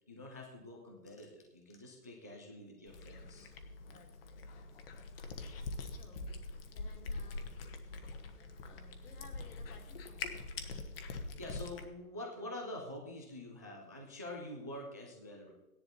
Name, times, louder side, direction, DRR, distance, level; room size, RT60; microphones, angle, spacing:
voice 1, 0.1-3.5 5.1-5.2 11.4-15.5, left 1 dB, 10° right, 0 dB, 0.4 m, -46 dB
Cat, 2.9-11.9, left 3 dB, 35° left, 1.3 m, -44 dB
voice 2, 3.8-4.9 5.8-7.6 8.3-10.4, left 2 dB, 75° left, 3 dB, 3.2 m, -60 dB
15.0 x 10.5 x 4.2 m, 1.0 s
hypercardioid pair, 155°, 47 cm